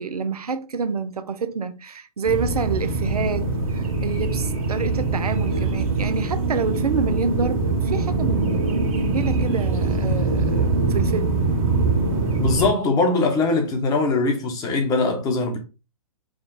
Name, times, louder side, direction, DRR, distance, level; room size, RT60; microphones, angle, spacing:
voice 1, 0.0-11.4, right 5 dB, 80° right, 0.7 m, -28 dB
sound 1, 2.2-12.7, right 3 dB, 65° right, 1.7 m, -23 dB
voice 2, 12.4-15.6, left 3 dB, 20° left, 1.1 m, -21 dB
5.1 x 2.4 x 3.8 m
hypercardioid pair, 130°, 19 cm